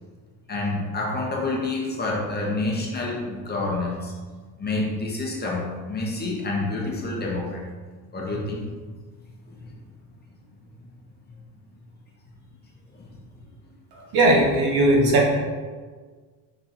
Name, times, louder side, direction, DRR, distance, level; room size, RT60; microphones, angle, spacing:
voice 1, 0.5-4.1 4.6-7.6 8.1-8.6 9.5-9.7, left 2 dB, 25° left, -3 dB, 1.2 m, -28 dB
voice 2, 13.9-15.3, right 1 dB, 60° right, -1 dB, 1.5 m, -19 dB
5.5 x 4.3 x 4.4 m, 1.5 s
cardioid pair, 135°, 40 cm